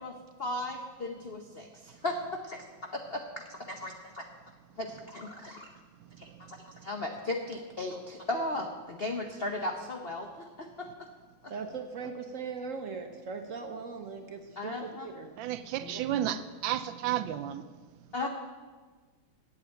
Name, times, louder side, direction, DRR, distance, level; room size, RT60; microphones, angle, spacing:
voice 1, 0.0-2.6 2.9-3.2 3.7-4.3 4.8-5.7 6.2-11.1 11.4-11.5 14.6-15.1 15.8-16.0 18.1-18.3, left 2 dB, 60° left, 3 dB, 0.6 m, -36 dB
voice 2, 11.5-15.3, right 5 dB, 55° right, 5 dB, 0.9 m, -39 dB
voice 3, 15.4-17.6, right 11 dB, 75° right, 12 dB, 1.2 m, -32 dB
8.3 x 7.9 x 9.0 m, 1.4 s
omnidirectional pair, 2.2 m